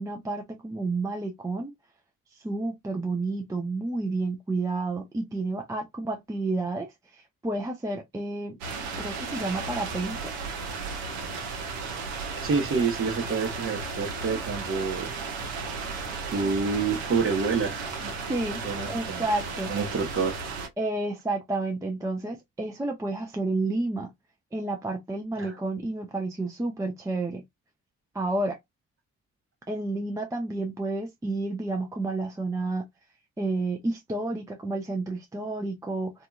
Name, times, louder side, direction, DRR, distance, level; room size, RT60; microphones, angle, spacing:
voice 1, 0.0-1.7 2.4-8.6 9.0-10.3 18.3-18.6 18.9-19.7 20.8-24.1 24.5-27.4 28.1-28.6 29.7-32.9 33.4-36.3, right 2 dB, 10° right, 0.5 m, -30 dB
sound 1, 8.6-20.7, right 4 dB, 75° right, 0.8 m, -34 dB
voice 2, 12.4-15.1 16.3-18.1 18.5-19.2 19.7-20.4 25.4-25.6, right 5 dB, 30° right, 0.9 m, -28 dB
2.7 x 2.4 x 2.3 m
figure-of-eight pair, 40°, 41 cm